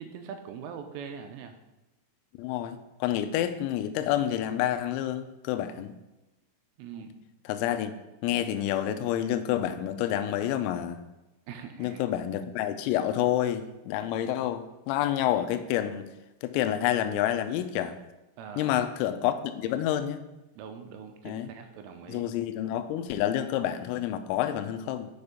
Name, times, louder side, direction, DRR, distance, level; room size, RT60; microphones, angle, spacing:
voice 1, 0.0-1.5 6.8-7.1 11.5-12.0 14.4-14.5 18.4-18.8 20.6-22.2, right 7 dB, 80° right, 6 dB, 3.1 m, -42 dB
voice 2, 2.4-6.0 7.5-7.9 8.2-11.0 11.8-16.1 16.4-18.0 18.6-20.2 21.3-21.5 22.1-25.1, left 11 dB, 90° left, 10 dB, 3.3 m, -28 dB
7.0 x 6.8 x 5.1 m, 1.0 s
omnidirectional pair, 6.0 m